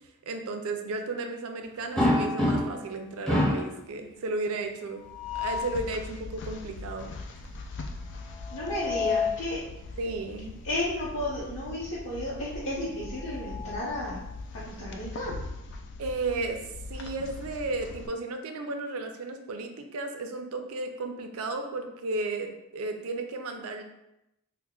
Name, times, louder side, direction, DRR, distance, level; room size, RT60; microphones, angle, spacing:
voice 1, 0.3-5.0 5.4-7.1 10.0-10.6 16.0-23.8, right 3 dB, 75° right, 5 dB, 0.5 m, -34 dB
sound 1, 2.0-2.9 3.3-3.7 5.0-5.7 8.4-9.4 10.8-11.0 11.4-11.5 13.0-14.3, left 2 dB, ahead, 0.6 m, -28 dB
sound 2, 5.0-18.1, left 3 dB, 55° left, 0.3 m, -41 dB
voice 2, 8.5-9.6 10.6-14.2 14.6-15.3, left 1 dB, 85° left, -11 dB, 1.0 m, -33 dB
5.3 x 2.2 x 2.3 m, 0.87 s
head